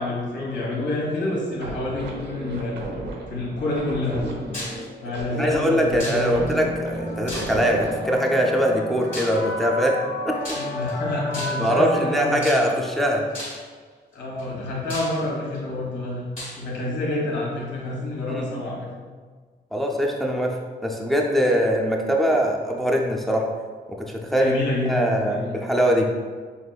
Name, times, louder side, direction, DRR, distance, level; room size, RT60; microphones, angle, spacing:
voice 1, 0.0-2.8 3.3-4.2 5.0-6.4 10.5-12.5 14.1-16.3 16.6-18.9 24.3-25.6, left 2 dB, 90° left, -5 dB, 1.3 m, -28 dB
sound 1, 1.6-8.2, right 2 dB, 90° right, 0.7 m, -36 dB
voice 2, 4.2-4.6 5.4-10.0 10.2-10.6 11.6-13.2 18.2-18.5 19.7-23.5 23.9-24.6 24.8-26.1, equal, ahead, 0 dB, 0.4 m, -22 dB
sound 2, 4.5-4.8 6.0-6.5 7.3-7.8 9.1-9.4 10.4-10.9 11.3-11.7 12.4-12.9 13.3-13.7 14.4-14.5 14.9-15.6 16.4-16.6, left 1 dB, 50° left, 1.4 m, -34 dB
sound 3, 6.3-13.3, equal, 70° left, 1.0 m, -32 dB
5.9 x 2.9 x 2.3 m, 1.5 s
wide cardioid pair, 175°, 18 cm